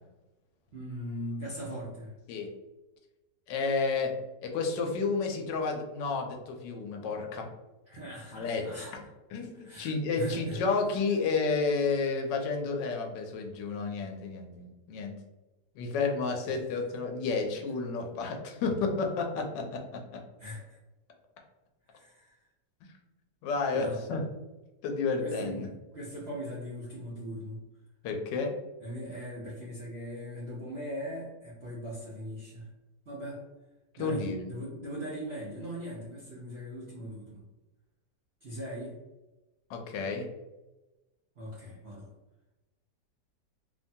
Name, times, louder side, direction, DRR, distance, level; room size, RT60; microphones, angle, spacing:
voice 1, 0.7-2.1 7.9-9.1 9.5-10.6 16.5-16.7 20.4-20.8 21.9-22.4 23.7-24.0 25.2-27.6 28.8-32.7 33.1-33.4 34.0-37.4 38.4-39.0 41.4-42.1, equal, 60° right, -7 dB, 0.6 m, -40 dB
voice 2, 3.5-4.1 4.4-7.5 8.3-8.7 9.3-15.1 15.8-19.8 23.4-24.2 24.8-25.7 28.0-28.6 33.9-34.5 39.7-40.3, left 4 dB, 85° left, 2 dB, 1.2 m, -31 dB
3.0 x 2.2 x 2.6 m, 1.1 s
omnidirectional pair, 1.9 m